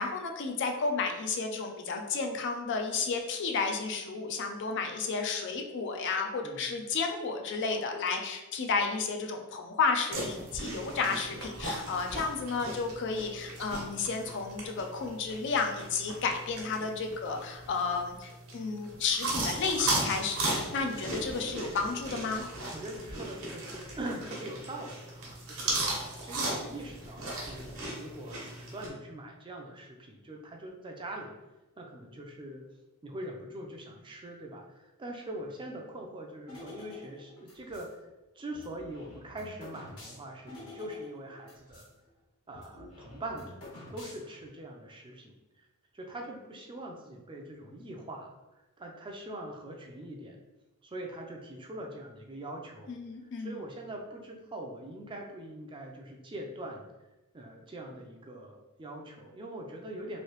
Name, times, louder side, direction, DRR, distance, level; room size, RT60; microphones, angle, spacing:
voice 1, 0.0-22.4 52.9-53.6, left 4 dB, 55° left, 4 dB, 0.4 m, -32 dB
sound 1, 10.1-28.9, right 2 dB, 65° right, 1.0 m, -37 dB
voice 2, 22.7-25.9 26.2-31.3 31.8-32.6 33.0-38.1 38.3-41.8 42.5-43.6 43.9-45.7 45.9-48.3 48.8-50.4 50.8-53.0 53.4-56.8 57.3-60.2, right 1 dB, 25° right, 1 dB, 0.4 m, -42 dB
sound 2, 36.5-37.9 38.5-41.9 42.2-42.3 42.5-44.5, left 2 dB, 85° left, 1.4 m, -49 dB
3.1 x 2.7 x 3.0 m, 1.0 s
head